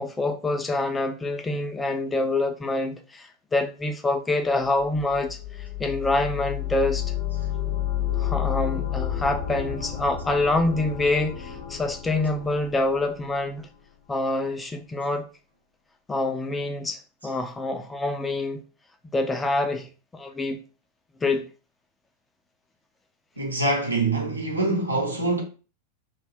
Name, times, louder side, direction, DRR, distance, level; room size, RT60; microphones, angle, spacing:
voice 1, 0.0-7.0 8.2-13.7 14.1-15.2 16.1-18.6 19.1-20.6 21.2-21.4, left 2 dB, 10° left, 0.4 m, -26 dB
sound 1, 4.8-13.6, left 11 dB, 55° left, 0.8 m, -31 dB
voice 2, 23.4-25.4, right 2 dB, 80° right, 0.7 m, -24 dB
2.4 x 2.2 x 3.3 m
figure-of-eight pair, 90°, 0 cm